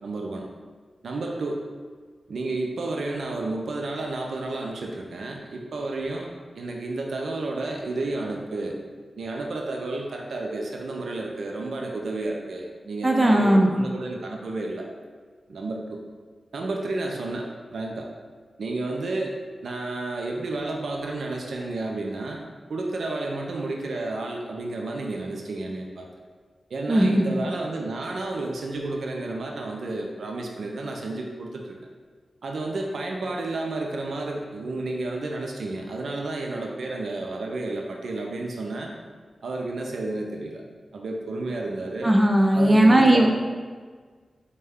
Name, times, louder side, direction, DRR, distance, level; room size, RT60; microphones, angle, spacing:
voice 1, 0.0-0.5 1.0-1.6 2.3-6.3 6.6-8.8 9.2-14.9 15.5-16.0 16.5-18.1 18.6-19.4 19.6-26.1 26.7-31.8 32.4-38.9 39.4-40.6 40.9-42.1 42.5-43.3, right 2 dB, 80° right, 0 dB, 0.4 m, -31 dB
voice 2, 13.0-13.7 26.9-27.3 42.0-43.3, right 1 dB, 30° right, 1 dB, 0.5 m, -17 dB
4.5 x 2.2 x 3.4 m, 1.5 s
cardioid pair, 50°, 0 cm